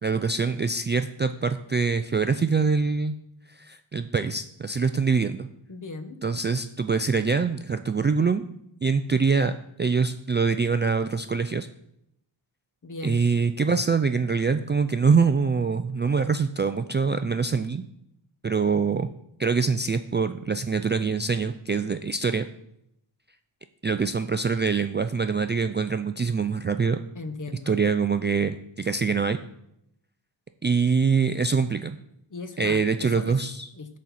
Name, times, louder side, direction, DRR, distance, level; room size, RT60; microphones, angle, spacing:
voice 1, 0.0-3.2 3.5-5.5 6.2-8.4 8.8-11.7 13.0-17.8 18.4-19.1 19.4-22.5 23.8-27.0 27.7-29.4 30.6-32.0 32.6-33.7, right 5 dB, 25° right, 9 dB, 0.3 m, -24 dB
voice 2, 5.7-6.2 12.8-13.2 27.1-27.8 32.3-33.4 33.7-34.0, left 3 dB, 40° left, 9 dB, 1.0 m, -37 dB
12.5 x 4.3 x 4.1 m, 0.78 s
cardioid pair, 70°, 48 cm